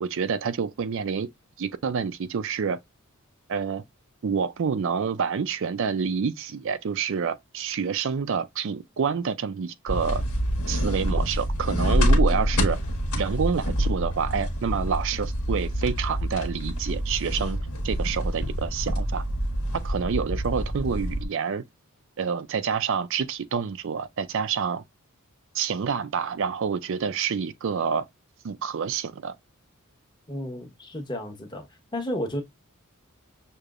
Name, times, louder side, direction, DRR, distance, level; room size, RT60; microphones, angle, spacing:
voice 1, 0.0-1.3 1.6-2.8 3.5-3.8 4.2-10.2 10.7-12.8 13.2-17.6 17.8-19.2 19.7-21.6 22.2-24.8 25.5-28.1 28.4-29.4, right 6 dB, 60° right, 0.4 m, -28 dB
sound 1, 9.9-21.3, equal, 80° left, 1.6 m, -26 dB
voice 2, 30.3-31.7 31.9-32.4, left 1 dB, 20° left, 1.1 m, -32 dB
6.6 x 2.8 x 2.4 m
head